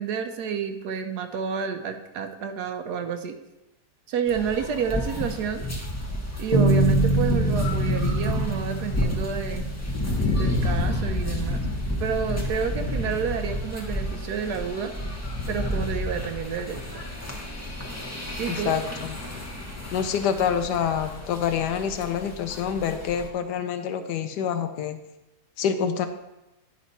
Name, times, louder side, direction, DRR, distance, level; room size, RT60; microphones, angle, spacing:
voice 1, 0.0-3.3 4.1-5.6 6.4-9.7 10.4-11.6 12.0-14.9 15.5-16.8 18.4-18.7, right 6 dB, 80° right, 7 dB, 1.2 m, -29 dB
sound 1, 4.3-23.3, left 1 dB, 10° left, 0.9 m, -30 dB
Bass guitar, 6.5-10.5, right 2 dB, 25° left, 1.3 m, -25 dB
voice 2, 18.5-19.2 19.9-25.0 25.6-26.1, left 8 dB, 85° left, 8 dB, 1.3 m, -27 dB
10.0 x 5.3 x 4.1 m, 0.96 s
omnidirectional pair, 1.8 m